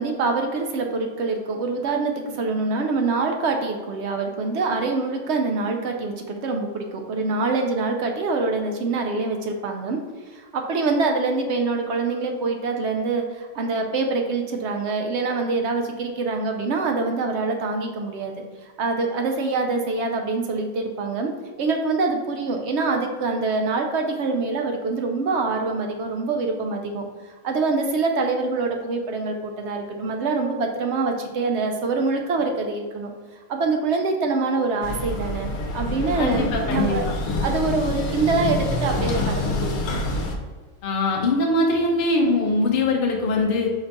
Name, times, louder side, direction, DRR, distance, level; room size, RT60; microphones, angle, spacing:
voice 1, 0.0-10.0 10.3-18.3 18.6-21.3 21.6-27.1 27.4-33.1 33.5-37.1 37.4-40.0, right 3 dB, 65° right, 3 dB, 0.8 m, -25 dB
sound 1, 34.8-40.4, left 1 dB, 85° left, 1.1 m, -26 dB
voice 2, 36.2-37.0 40.8-43.7, left 2 dB, 50° left, -1 dB, 0.7 m, -22 dB
5.1 x 2.3 x 4.0 m, 1.4 s
omnidirectional pair, 1.5 m